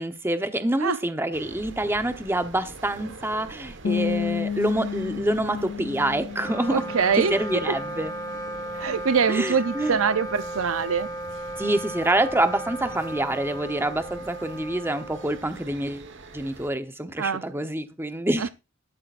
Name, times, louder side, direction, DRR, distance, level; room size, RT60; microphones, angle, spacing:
voice 1, 0.0-6.9 7.1-8.1 9.3-10.0 11.6-16.1 16.3-18.5, right 1 dB, 10° right, 0.9 m, -26 dB
sound 1, 1.3-16.7, right 2 dB, 60° right, 1.3 m, -45 dB
sound 2, 3.8-9.4, left 6 dB, 60° left, 0.5 m, -32 dB
Wind instrument woodwind instrument, 6.3-15.9, right 1 dB, 15° left, 0.9 m, -35 dB
voice 2, 6.7-7.3 8.8-11.1 17.2-17.4 18.4-18.5, right 6 dB, 80° right, 0.6 m, -23 dB
12.5 x 12.0 x 2.5 m
head